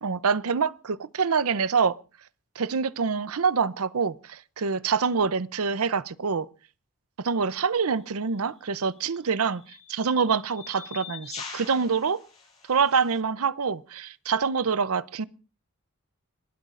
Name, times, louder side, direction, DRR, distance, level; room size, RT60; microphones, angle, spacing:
voice 1, 0.0-2.0 2.6-6.5 7.2-9.6 9.9-12.2 12.7-15.2, right 5 dB, 80° right, 0.6 m, -26 dB
sound 1, 7.8-8.0 9.0-13.2, left 6 dB, 30° left, 7.8 m, -44 dB
30.0 x 12.5 x 2.5 m
head